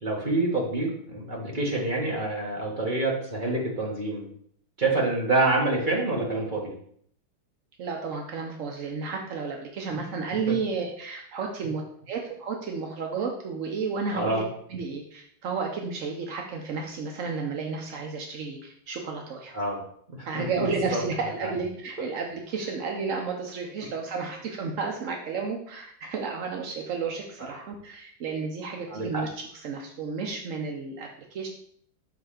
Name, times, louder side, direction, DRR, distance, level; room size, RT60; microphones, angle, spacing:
voice 1, 0.0-4.3 4.8-6.7 14.1-14.5 19.5-19.8 20.2-20.6 20.9-21.0 21.4-21.5 28.9-29.2, right 2 dB, 30° right, -2 dB, 1.1 m, -27 dB
voice 2, 7.8-14.4 14.7-19.5 20.3-29.3 29.5-31.5, right 4 dB, 65° right, 2 dB, 0.7 m, -32 dB
6.3 x 3.3 x 5.7 m, 0.63 s
omnidirectional pair, 2.3 m